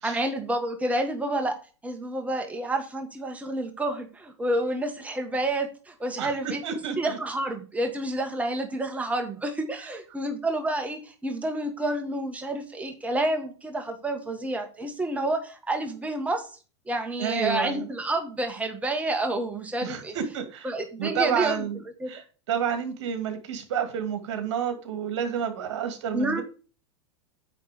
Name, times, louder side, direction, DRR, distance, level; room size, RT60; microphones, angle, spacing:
voice 1, 0.0-1.5 1.8-16.4 16.9-20.2 20.6-21.7 22.0-22.1 26.1-26.4, right 1 dB, 10° right, 4 dB, 1.6 m, -29 dB
voice 2, 6.6-7.2 17.2-17.9 19.8-20.7 21.0-21.8 22.1-26.4, right 8 dB, 70° right, 7 dB, 2.2 m, -30 dB
9.4 x 3.7 x 6.7 m, 0.36 s
hypercardioid pair, 125°, 15 cm